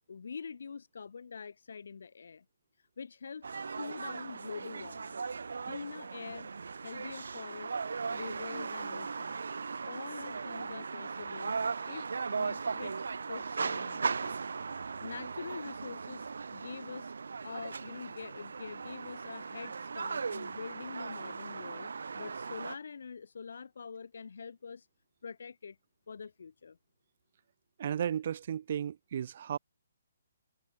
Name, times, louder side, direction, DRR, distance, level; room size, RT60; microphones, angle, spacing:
voice 1, 0.1-2.4 2.8-6.5 6.8-7.7 8.1-9.4 9.9-11.6 11.9-14.4 15.0-17.1 17.4-24.9 25.2-25.8 26.1-26.8, left 5 dB, 65° left, 1.1 m, -45 dB
sound 1, 3.4-22.8, right 5 dB, 80° right, 1.2 m, -38 dB
voice 2, 27.8-29.6, right 9 dB, 40° right, 1.0 m, -34 dB
hypercardioid pair, 175°, 0 cm